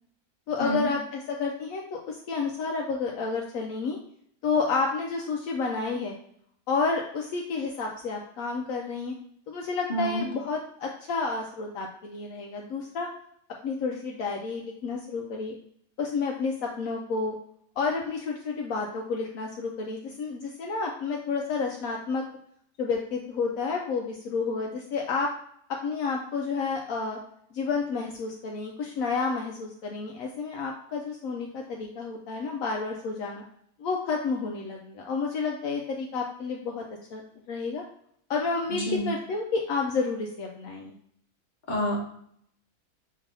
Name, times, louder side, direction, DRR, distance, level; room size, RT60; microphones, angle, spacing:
voice 1, 0.5-4.0 4.4-6.2 6.7-9.1 9.5-13.1 13.6-15.6 16.0-17.3 17.8-22.2 22.8-25.3 25.7-27.2 27.5-33.4 33.8-36.8 37.1-37.2 37.5-37.8 38.3-40.9, left 4 dB, 70° left, 0 dB, 1.0 m, -30 dB
voice 2, 9.9-10.2 38.9-39.1 41.7-42.0, equal, 35° left, -3 dB, 1.2 m, -28 dB
6.2 x 3.3 x 2.6 m, 0.66 s
omnidirectional pair, 1.6 m